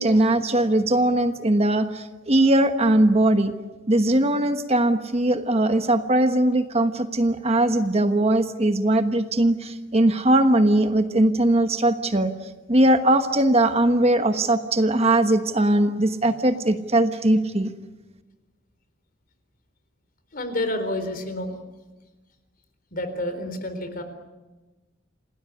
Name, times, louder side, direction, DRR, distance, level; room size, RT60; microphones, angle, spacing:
voice 1, 0.0-3.5 3.9-12.3 12.7-17.7, right 1 dB, 30° right, 8 dB, 1.3 m, -20 dB
voice 2, 20.3-21.6 22.9-24.0, left 1 dB, 45° left, 9 dB, 3.9 m, -29 dB
28.0 x 18.5 x 9.9 m, 1.2 s
head